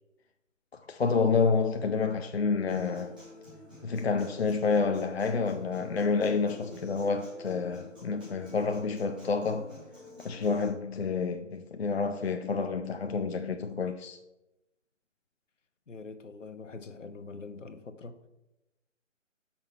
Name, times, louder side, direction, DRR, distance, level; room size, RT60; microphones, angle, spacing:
voice 1, 0.7-3.1 3.8-9.7 10.2-14.2, left 4 dB, 55° left, 0.4 m, -29 dB
Human voice / Acoustic guitar, 2.7-10.7, left 2 dB, 5° right, 0.7 m, -49 dB
voice 2, 15.9-18.1, left 4 dB, 70° left, 0.8 m, -44 dB
5.9 x 4.4 x 5.7 m
figure-of-eight pair, 145°, 39 cm